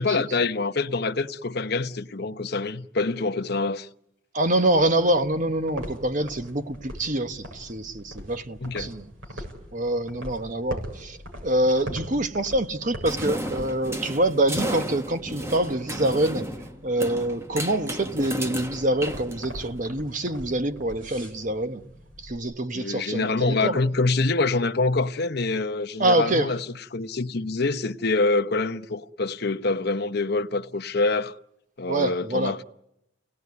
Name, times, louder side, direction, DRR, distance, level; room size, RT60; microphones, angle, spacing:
voice 1, 0.0-3.9 8.6-8.9 22.7-26.7 26.9-31.4 31.8-32.6, left 3 dB, 55° left, 0.9 m, -25 dB
voice 2, 4.3-9.0 9.7-11.2 11.4-16.5 16.8-21.8 22.2-23.8 26.0-26.5 31.9-32.6, right 1 dB, 40° right, 1.2 m, -25 dB
sound 1, 4.7-22.4, equal, 80° right, 7.4 m, -42 dB
sound 2, 13.0-19.8, equal, 15° right, 1.2 m, -33 dB
29.5 x 18.5 x 9.6 m
head